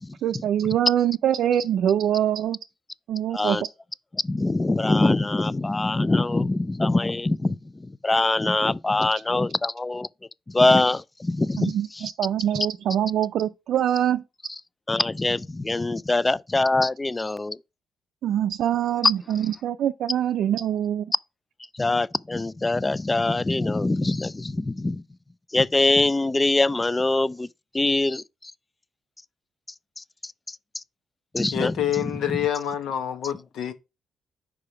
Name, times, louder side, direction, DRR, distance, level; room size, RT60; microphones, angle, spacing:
voice 1, 0.2-2.6 3.1-3.6 11.6-14.2 18.2-21.1, right 10 dB, 75° right, 0.4 m, -24 dB
voice 2, 4.2-10.1 10.5-11.7 14.9-17.6 19.0-19.1 21.7-25.0 25.5-27.5 27.7-28.5 30.0-30.8 31.3-31.7, left 2 dB, 20° left, 0.3 m, -23 dB
voice 3, 31.5-33.7, left 10 dB, 80° left, 1.1 m, -27 dB
5.0 x 4.7 x 5.8 m
cardioid pair, 90°, 0 cm